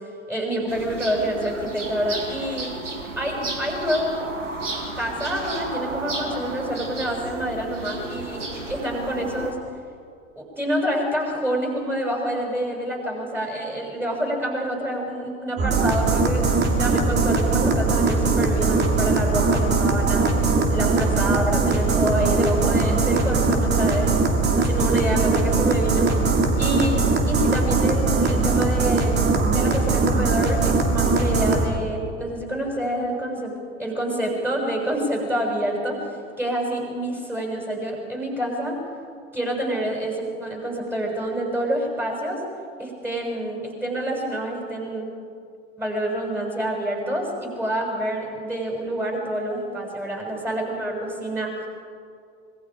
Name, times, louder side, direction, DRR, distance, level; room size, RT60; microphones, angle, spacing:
voice 1, 0.3-2.7 3.2-4.3 4.9-9.6 10.4-16.5 16.8-20.3 20.7-24.2 24.6-26.1 26.6-33.5 33.8-36.1 36.4-38.8 39.3-42.4 42.8-45.1 45.8-51.7, right 1 dB, 5° right, 0 dB, 6.4 m, -27 dB
sound 1, 0.7-9.5, right 2 dB, 80° right, 2.7 m, -33 dB
sound 2, 15.6-31.7, right 3 dB, 25° right, 2.8 m, -20 dB
25.5 x 22.0 x 5.0 m, 2.3 s
figure-of-eight pair, 80°, 36 cm